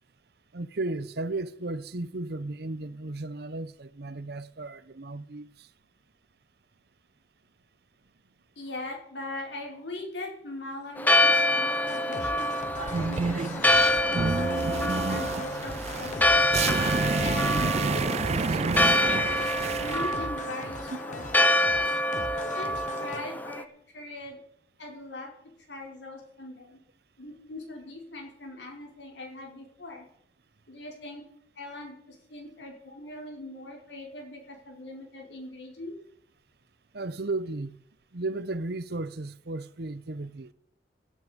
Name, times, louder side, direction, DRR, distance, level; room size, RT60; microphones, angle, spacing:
voice 1, 0.5-5.7 20.9-21.0 36.9-37.8 38.1-40.5, right 2 dB, 65° right, 0.8 m, -34 dB
voice 2, 8.6-16.5 17.2-21.2 22.3-23.7 23.9-24.4 24.8-25.3 25.7-26.8 27.2-30.0 30.7-31.2 31.5-35.9, left 2 dB, 90° left, 4.9 m, -41 dB
Church bell, 11.0-23.6, left 1 dB, 10° left, 0.8 m, -26 dB
sound 1, 11.9-23.2, left 3 dB, 45° left, 1.0 m, -41 dB
sound 2, 12.7-20.2, right 4 dB, 40° right, 0.4 m, -29 dB
17.5 x 9.5 x 5.3 m
head